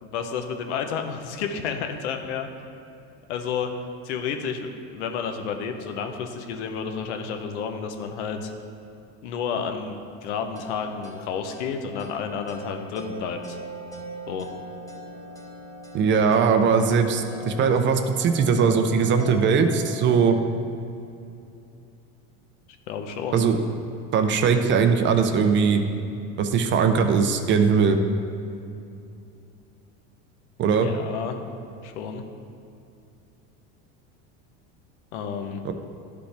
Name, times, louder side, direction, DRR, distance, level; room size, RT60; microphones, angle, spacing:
voice 1, 0.0-2.5 3.3-3.7 4.0-8.5 9.2-13.6 14.3-14.5 22.9-23.4 30.8-31.4 31.8-32.2 35.1-35.6, left 6 dB, 90° left, 5 dB, 0.8 m, -31 dB
sound 1, 10.6-20.2, left 1 dB, 10° left, 0.9 m, -41 dB
voice 2, 15.9-20.4 23.3-23.6 24.1-25.8 26.4-28.0 30.6-30.9 35.6-35.7, right 6 dB, 35° right, 7 dB, 0.5 m, -20 dB
11.5 x 5.1 x 3.4 m, 2.6 s
supercardioid pair, 125°, 34 cm